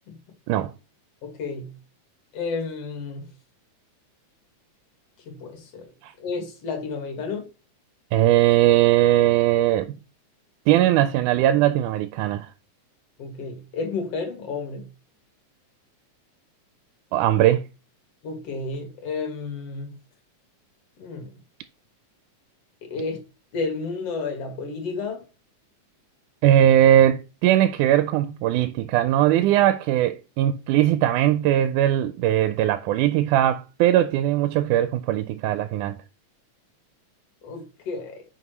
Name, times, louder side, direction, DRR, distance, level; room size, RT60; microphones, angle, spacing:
voice 1, 1.2-1.8 2.3-3.3 5.3-5.9 6.2-7.5 13.2-14.9 18.2-20.0 21.0-21.3 22.8-23.2 23.5-25.2 37.4-38.2, left 4 dB, 55° left, 2.6 m, -31 dB
voice 2, 8.1-10.0 10.7-12.5 17.1-17.6 26.4-36.0, right 12 dB, 90° right, 2.1 m, -20 dB
9.8 x 5.2 x 3.1 m
omnidirectional pair, 3.5 m